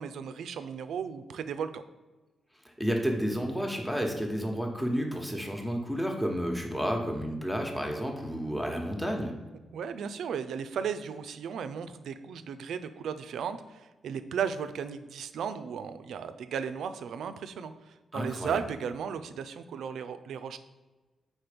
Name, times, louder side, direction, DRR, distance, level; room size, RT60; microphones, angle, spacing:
voice 1, 0.0-1.8 9.7-20.6, right 7 dB, 80° right, 11 dB, 0.4 m, -35 dB
voice 2, 2.6-9.3 18.1-18.6, equal, 5° left, 1 dB, 1.0 m, -31 dB
4.4 x 4.3 x 5.0 m, 1.2 s
cardioid pair, 60°, 0 cm